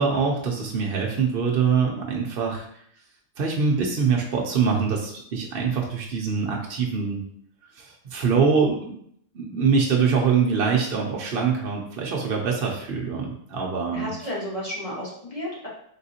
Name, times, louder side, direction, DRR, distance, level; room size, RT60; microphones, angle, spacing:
voice 1, 0.0-2.7 3.4-7.2 7.8-8.8 9.3-14.1, right 5 dB, 55° right, -1 dB, 0.7 m, -24 dB
voice 2, 13.9-15.7, equal, 25° left, -6 dB, 1.4 m, -32 dB
4.0 x 3.7 x 2.8 m, 0.67 s
omnidirectional pair, 1.4 m